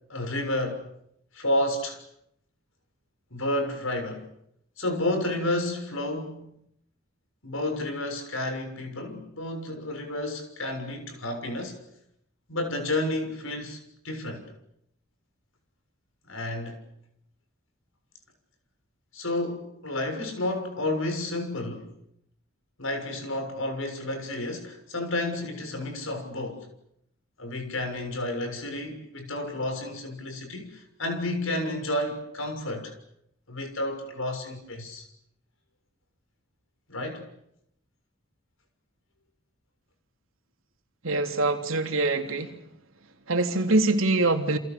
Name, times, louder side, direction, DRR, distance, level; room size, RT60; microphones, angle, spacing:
voice 1, 0.1-0.8 1.3-2.0 3.3-4.3 4.8-6.5 7.4-11.8 12.5-14.5 16.3-16.8 19.1-21.9 22.8-26.7 27.4-32.9 33.5-35.0 36.9-37.3, left 1 dB, 75° left, 6.7 m, -31 dB
voice 2, 41.0-42.6 43.3-44.6, right 2 dB, 75° right, 3.4 m, -24 dB
30.0 x 27.5 x 7.0 m
head